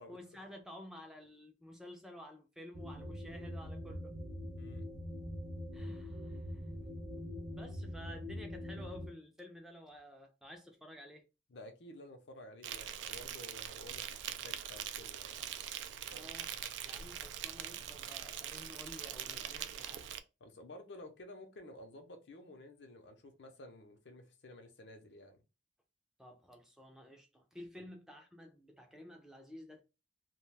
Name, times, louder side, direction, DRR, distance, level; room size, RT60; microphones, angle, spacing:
voice 1, 0.1-4.1 5.7-6.6 7.5-11.2 16.1-20.1 26.2-29.8, left 1 dB, 5° right, 0.4 m, -52 dB
sound 1, 2.7-9.1, left 1 dB, 40° right, 0.7 m, -43 dB
voice 2, 4.6-4.9 11.5-15.4 20.4-25.4 27.7-27.9, left 1 dB, 70° left, 0.6 m, -53 dB
Insect, 12.6-20.2, right 10 dB, 80° right, 0.3 m, -43 dB
2.3 x 2.2 x 3.2 m
head